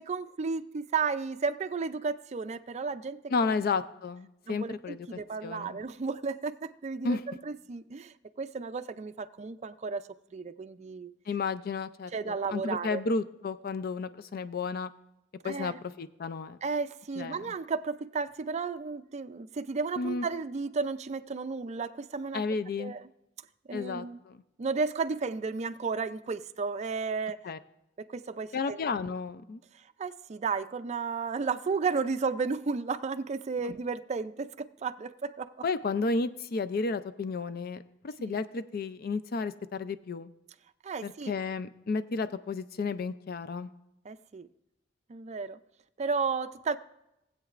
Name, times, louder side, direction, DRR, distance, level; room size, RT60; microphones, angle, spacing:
voice 1, 0.0-3.5 4.5-7.2 7.5-11.1 12.1-13.0 15.4-15.8 16.6-22.4 22.8-23.0 23.7-24.2 24.6-27.4 28.0-28.8 29.7-35.5 38.2-38.4 40.8-41.4 44.1-44.5 45.1-45.6 46.0-46.8, right 4 dB, 35° right, 0.4 m, -33 dB
voice 2, 3.3-5.1 5.4-5.8 7.0-7.2 11.3-14.9 15.4-16.6 17.2-17.4 20.0-20.3 22.3-22.9 23.7-24.4 27.4-27.6 28.5-29.6 33.6-33.7 35.6-40.3 41.0-43.7, left 4 dB, 55° left, 0.4 m, -32 dB
19.5 x 8.0 x 2.5 m
head